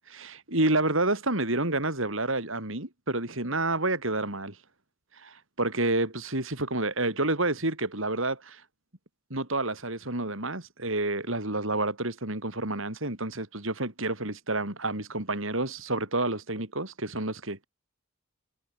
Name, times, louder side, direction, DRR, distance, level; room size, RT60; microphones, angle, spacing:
voice 1, 0.1-4.5 5.2-8.6 9.3-17.7, right 2 dB, 65° right, 5.0 m, -29 dB
head